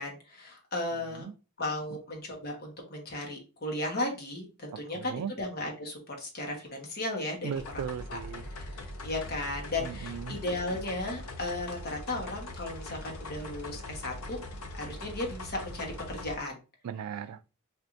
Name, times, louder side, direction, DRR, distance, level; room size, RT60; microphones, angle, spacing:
voice 1, 0.0-1.3 1.6-7.5 8.1-8.2 8.5-8.7 9.0-14.4 14.8-16.6, left 2 dB, 45° left, 1.1 m, -35 dB
voice 2, 4.7-5.3 7.4-8.5 9.8-10.4 16.8-17.4, right 8 dB, 90° right, 0.3 m, -37 dB
sound 1, 7.5-16.4, left 2 dB, 80° left, 0.7 m, -41 dB
4.3 x 2.6 x 2.5 m
head